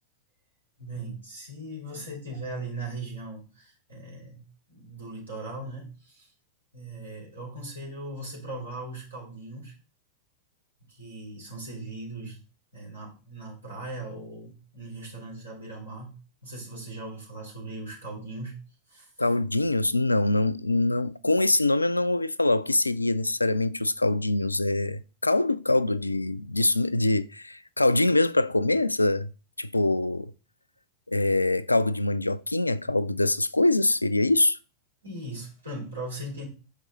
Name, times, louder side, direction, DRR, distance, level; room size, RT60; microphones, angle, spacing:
voice 1, 0.8-6.3 6.7-9.7 10.9-12.4 12.7-18.6 18.9-19.1 35.0-36.5, right 2 dB, 75° right, 3.2 m, -39 dB
voice 2, 19.2-29.3 29.6-30.3 31.1-34.6, left 2 dB, 85° left, 0.3 m, -24 dB
6.5 x 5.0 x 4.1 m
figure-of-eight pair, 90°, 0 cm